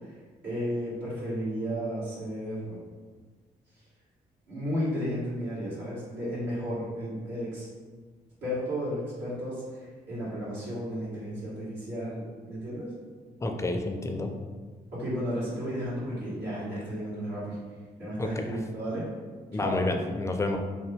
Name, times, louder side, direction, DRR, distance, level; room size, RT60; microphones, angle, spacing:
voice 1, 0.4-2.8 4.5-7.7 8.4-12.9 14.9-17.6 18.0-19.1 19.5-19.8, equal, 80° right, -10 dB, 1.3 m, -33 dB
voice 2, 13.4-14.3 18.2-18.6 19.5-20.6, left 2 dB, 15° left, 4 dB, 0.4 m, -29 dB
2.8 x 2.2 x 3.4 m, 1.5 s
supercardioid pair, 45°, 18 cm